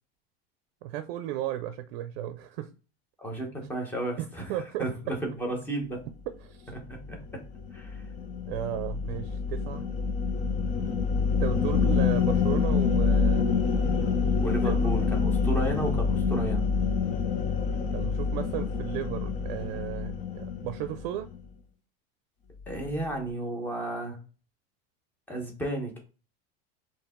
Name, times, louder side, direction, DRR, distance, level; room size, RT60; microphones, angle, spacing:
voice 1, 0.8-2.7 4.2-4.9 6.4-6.7 8.5-9.9 11.4-13.5 14.6-14.8 17.9-21.3, right 12 dB, 65° right, 10 dB, 0.5 m, -35 dB
voice 2, 3.2-4.5 4.8-6.0 6.7-7.2 7.7-8.0 14.4-16.7 22.7-24.2 25.3-26.0, right 1 dB, 5° left, 1 dB, 0.9 m, -33 dB
sound 1, 6.9-21.4, left 5 dB, 25° left, 0.4 m, -27 dB
4.6 x 2.9 x 3.6 m, 0.35 s
supercardioid pair, 170°, 30 cm